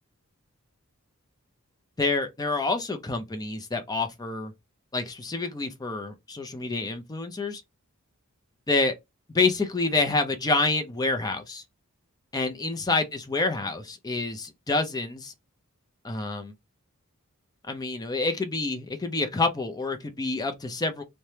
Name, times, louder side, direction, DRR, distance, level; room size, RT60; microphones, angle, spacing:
voice 1, 2.0-4.5 4.9-7.6 8.7-8.9 9.3-11.6 12.3-15.3 16.0-16.5 17.7-21.0, left 3 dB, 15° left, 0.4 m, -27 dB
3.2 x 2.1 x 2.7 m
head